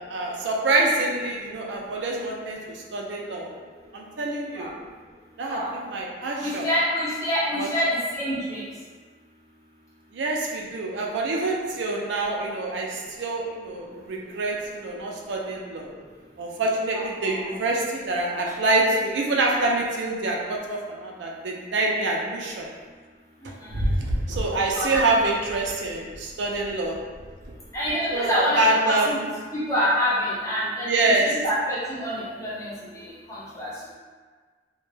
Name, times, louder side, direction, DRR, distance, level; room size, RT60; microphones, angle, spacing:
voice 1, 0.0-3.5 3.9-4.7 5.4-6.7 7.6-7.7 10.1-15.9 16.4-22.7 23.7-27.0 28.1-29.1 30.9-31.3, right 2 dB, 85° right, -1 dB, 0.4 m, -26 dB
voice 2, 6.4-8.6 16.9-17.5 23.6-23.8 24.7-25.1 27.7-29.2 29.5-33.9, equal, 20° left, -9 dB, 0.7 m, -27 dB
2.2 x 2.1 x 3.1 m, 1.5 s
head